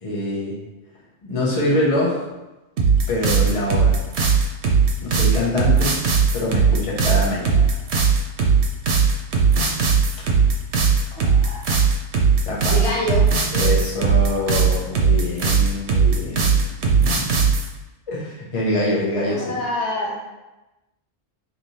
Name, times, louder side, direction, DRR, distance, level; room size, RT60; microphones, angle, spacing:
voice 1, 0.0-0.6 1.2-2.2 3.1-4.0 5.0-5.9 6.3-7.8 12.4-12.8 13.5-16.6 17.0-17.4 18.1-19.6, left 1 dB, 30° left, -5 dB, 0.9 m, -24 dB
sound 1, 2.8-17.7, right 5 dB, 75° right, 0.9 m, -18 dB
voice 2, 11.1-11.7 12.7-13.2 19.3-20.2, left 1 dB, 75° left, -4 dB, 1.2 m, -26 dB
3.3 x 2.9 x 4.1 m, 1.1 s
omnidirectional pair, 1.1 m